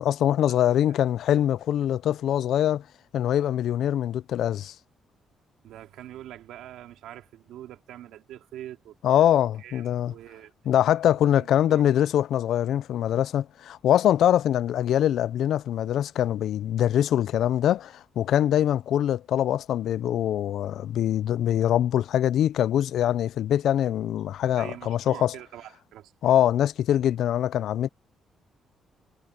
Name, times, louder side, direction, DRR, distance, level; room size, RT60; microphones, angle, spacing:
voice 1, 0.0-2.8 3.1-4.7 9.0-10.1 10.7-25.3 26.2-27.9, left 11 dB, 75° left, 0.5 m, -23 dB
voice 2, 5.6-10.5 11.3-11.8 24.6-26.5, right 12 dB, 85° right, 2.7 m, -44 dB
cardioid pair, 90°, 0 cm